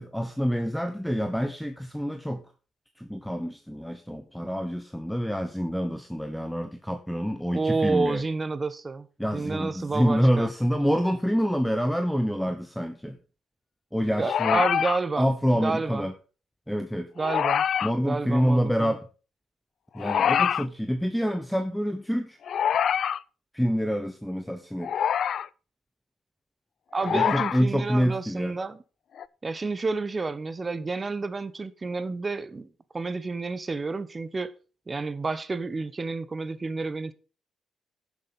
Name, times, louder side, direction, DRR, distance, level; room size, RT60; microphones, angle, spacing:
voice 1, 0.0-2.4 3.0-8.2 9.2-13.2 13.9-14.6 15.2-16.1 16.7-17.1 17.8-19.0 19.9-22.4 23.5-24.9 27.1-28.5, equal, ahead, 1.1 m, -27 dB
voice 2, 7.5-9.1 9.3-10.5 14.2-15.3 15.5-16.1 17.2-17.6 18.0-19.0 26.9-28.8 29.4-32.7 32.9-34.5 34.9-37.1, right 3 dB, 25° right, 1.1 m, -30 dB
sound 1, 14.2-15.0 17.2-17.9 20.0-20.7 22.5-23.2 24.8-25.5 27.0-27.6 29.2-29.3, left 8 dB, 60° left, 0.4 m, -25 dB
10.5 x 7.3 x 5.5 m
cardioid pair, 90°, 0 cm